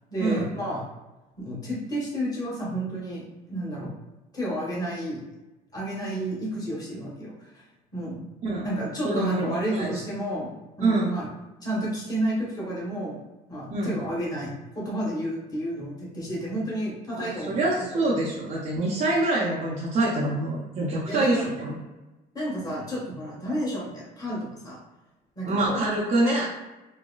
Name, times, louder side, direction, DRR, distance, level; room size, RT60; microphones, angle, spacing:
voice 1, 0.1-0.8 1.4-3.2 3.5-3.9 4.3-5.2 5.7-7.6 7.9-8.2 8.6-10.5 10.8-11.3 11.6-13.2 13.5-17.6 17.9-18.0 21.1-21.6 22.3-24.8 25.3-25.8, right 1 dB, 20° left, -5 dB, 1.3 m, -31 dB
voice 2, 9.0-10.0 10.8-11.2 13.7-14.0 17.1-21.8 25.4-26.4, right 2 dB, 45° right, -7 dB, 0.7 m, -25 dB
3.9 x 2.1 x 2.3 m, 1.1 s
cardioid pair, 110°, 17 cm